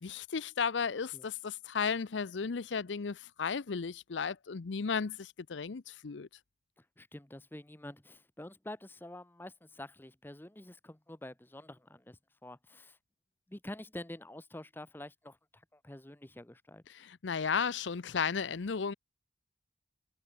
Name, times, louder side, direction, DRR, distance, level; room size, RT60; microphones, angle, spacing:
voice 1, 0.0-6.3 16.9-18.9, left 6 dB, 85° left, 0.6 m, -34 dB
voice 2, 7.0-13.0 13.5-16.8, left 1 dB, 10° left, 0.8 m, -47 dB
head